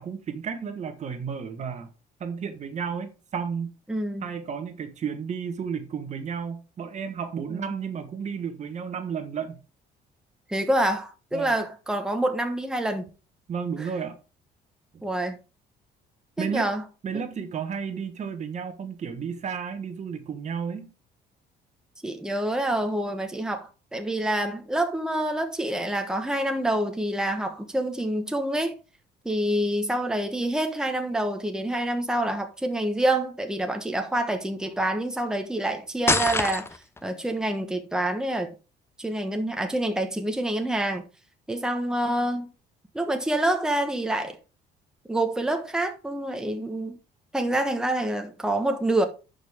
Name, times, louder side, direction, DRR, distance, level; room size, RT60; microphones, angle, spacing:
voice 1, 0.0-1.9 2.2-3.7 4.2-9.6 11.3-11.5 13.5-14.2 16.4-16.7 17.0-20.9, right 6 dB, 45° right, 1.2 m, -32 dB
voice 2, 3.9-4.3 7.5-7.6 10.5-13.1 13.8-13.9 15.0-15.4 16.4-16.8 17.1-17.3 22.0-28.7 29.2-36.7 37.0-38.5 39.0-41.0 41.5-42.5 42.9-44.4 45.1-47.0 47.3-49.0, right 1 dB, 5° right, 1.2 m, -27 dB
sound 1, 36.1-37.0, left 3 dB, 15° left, 0.7 m, -24 dB
11.0 x 5.2 x 3.6 m
cardioid pair, 110°, 17 cm